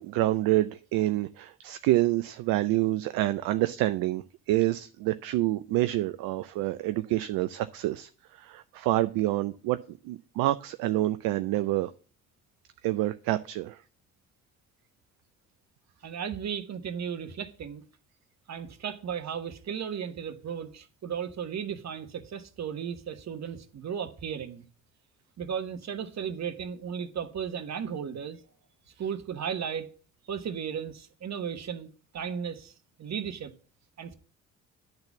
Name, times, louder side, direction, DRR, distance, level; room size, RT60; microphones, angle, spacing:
voice 1, 0.0-11.9 12.8-13.8, right 15 dB, 60° right, 0.6 m, -27 dB
voice 2, 16.0-17.8 18.5-24.7 25.4-28.4 29.0-29.9 30.3-33.5 34.0-34.1, right 7 dB, 40° right, 1.2 m, -35 dB
10.5 x 4.0 x 7.1 m
hypercardioid pair, 50°, 40 cm